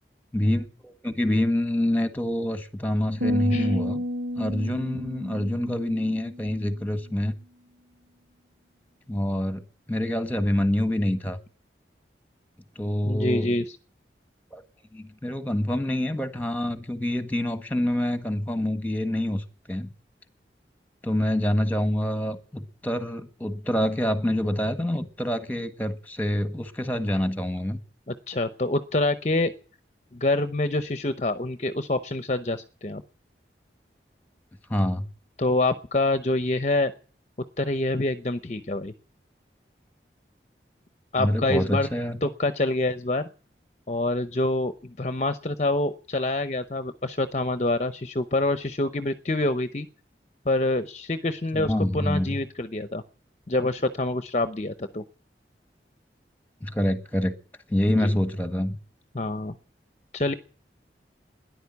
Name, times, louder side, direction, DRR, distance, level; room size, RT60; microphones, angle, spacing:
voice 1, 0.3-4.0 4.3-7.3 9.1-9.6 9.9-11.4 12.7-13.5 14.5-14.6 14.9-19.9 21.0-27.8 34.7-35.1 41.2-42.2 51.5-52.4 56.6-57.3 57.7-58.8, left 1 dB, 10° left, 1.4 m, -26 dB
sound 1, 3.2-6.6, equal, 80° right, 2.2 m, -30 dB
voice 2, 13.1-13.8 28.1-29.5 30.1-33.0 35.4-36.9 37.6-38.9 41.1-41.9 42.2-43.3 43.9-49.9 50.5-53.0 53.5-55.0 57.9-58.2 59.1-59.5 60.1-60.3, left 2 dB, 40° left, 0.8 m, -26 dB
13.0 x 10.5 x 9.5 m
head